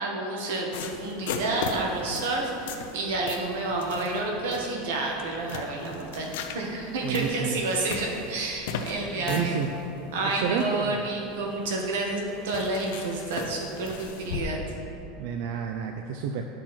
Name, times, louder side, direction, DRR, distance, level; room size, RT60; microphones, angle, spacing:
voice 1, 0.0-9.6 10.1-14.6, right 2 dB, 85° right, -1 dB, 1.6 m, -30 dB
sound 1, 0.7-14.4, left 5 dB, 75° left, 0.7 m, -39 dB
voice 2, 7.0-7.6 9.0-9.7 10.2-11.0 15.2-16.5, right 6 dB, 50° right, 4 dB, 0.4 m, -30 dB
10.0 x 6.2 x 4.3 m, 2.8 s
supercardioid pair, 180°, 0 cm